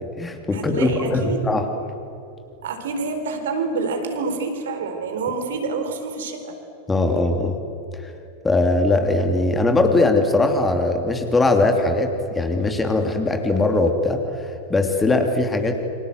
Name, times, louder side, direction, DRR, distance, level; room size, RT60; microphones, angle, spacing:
voice 1, 0.0-1.6 6.9-7.5 8.0-8.1 8.4-15.9, left 2 dB, 10° left, 5 dB, 2.9 m, -20 dB
voice 2, 0.5-1.5 2.6-6.6, right 4 dB, 60° right, 5 dB, 4.1 m, -27 dB
29.0 x 26.0 x 8.0 m, 2.7 s
figure-of-eight pair, 90°, 0 cm